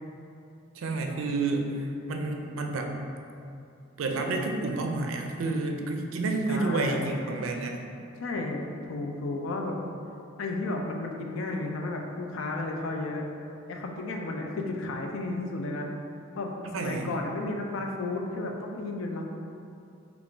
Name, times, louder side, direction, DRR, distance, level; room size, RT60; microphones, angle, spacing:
voice 1, 0.8-3.0 4.0-7.8 16.7-17.1, right 3 dB, 75° right, 3 dB, 0.4 m, -30 dB
voice 2, 6.5-7.1 8.2-9.8 10.4-13.3 13.7-15.9 16.4-19.2, left 2 dB, 70° left, 2 dB, 0.4 m, -33 dB
3.4 x 2.4 x 3.7 m, 2.6 s
head